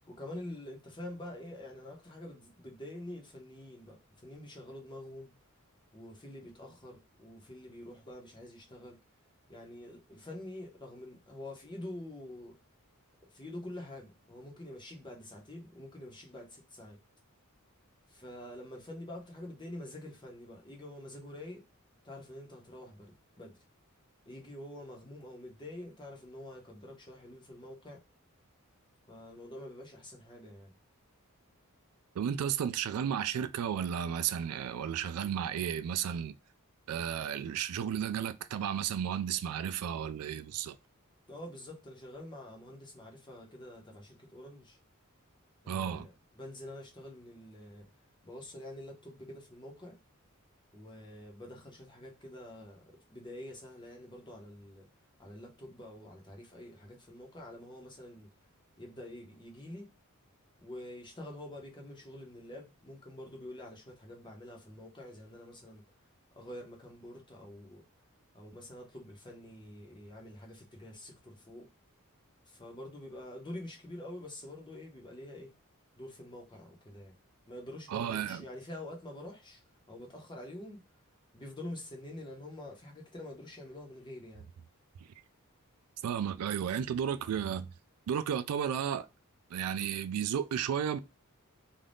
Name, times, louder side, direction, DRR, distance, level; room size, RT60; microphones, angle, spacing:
voice 1, 0.0-4.0 4.2-5.4 5.9-9.0 9.5-12.5 13.3-17.0 18.1-21.6 22.0-23.6 24.2-28.0 29.1-30.7 41.3-44.8 45.6-47.9 48.2-50.0 50.7-54.9 55.2-58.3 58.8-59.9 60.6-65.8 66.4-67.8 68.3-71.7 72.5-75.5 76.0-77.1 77.5-79.6 79.9-80.8 81.3-84.4, left 1 dB, 20° left, 0.9 m, -46 dB
voice 2, 32.2-36.4 36.9-40.8 45.7-46.1 77.9-78.4 86.0-87.7 88.1-89.1 89.5-91.0, right 8 dB, 85° right, 0.3 m, -33 dB
2.6 x 2.3 x 3.3 m
head